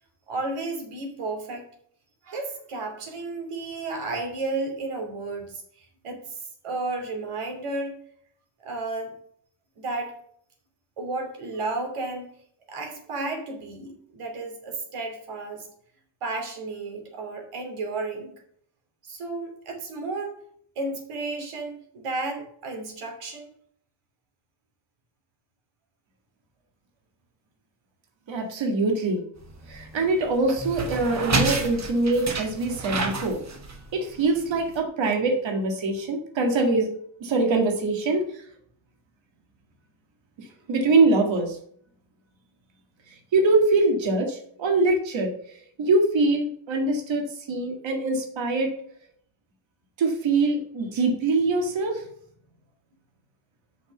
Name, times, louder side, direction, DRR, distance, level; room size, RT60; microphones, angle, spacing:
voice 1, 0.3-1.6 2.2-6.4 6.6-7.9 8.6-9.2 9.8-10.2 11.0-12.3 12.7-15.7 16.2-18.3 19.0-20.4 20.7-23.5, right 3 dB, 85° right, 3 dB, 3.0 m, -32 dB
voice 2, 28.3-29.2 29.7-33.4 33.9-36.9 37.2-38.4 40.4-41.6 43.3-48.7 50.0-52.1, right 3 dB, 60° right, 3 dB, 1.9 m, -23 dB
sound 1, 29.4-34.8, right 3 dB, 35° right, 1.2 m, -30 dB
6.4 x 5.9 x 6.8 m, 0.63 s
wide cardioid pair, 165°, 50 cm